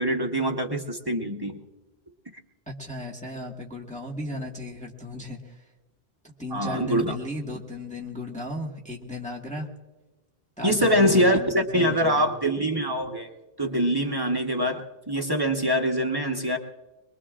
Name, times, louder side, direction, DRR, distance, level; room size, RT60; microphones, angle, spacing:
voice 1, 0.0-1.6 6.5-7.1 10.6-13.3 13.6-16.6, equal, 20° right, 2 dB, 1.1 m, -24 dB
voice 2, 2.7-5.6 6.4-9.7 10.6-12.4, left 1 dB, 5° left, -2 dB, 1.6 m, -35 dB
23.5 x 22.5 x 2.5 m, 1.1 s
omnidirectional pair, 1.1 m